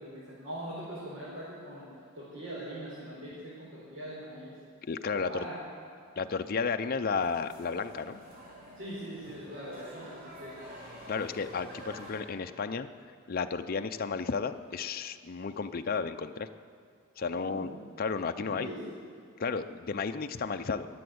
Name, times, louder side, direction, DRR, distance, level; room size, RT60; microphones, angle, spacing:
voice 1, 0.0-1.9 2.1-4.6 5.1-5.6 8.7-10.6 11.1-11.2 17.3-17.7 18.4-18.8, right 1 dB, 60° right, -9 dB, 4.6 m, -42 dB
voice 2, 4.9-5.5 6.2-8.2 11.1-12.9 13.3-16.5 17.2-17.7 18.0-18.7 19.4-20.9, left 5 dB, 45° left, 8 dB, 0.5 m, -33 dB
sound 1, 7.1-12.2, equal, 40° right, 5.0 m, -48 dB
21.0 x 7.7 x 7.9 m, 2.2 s
head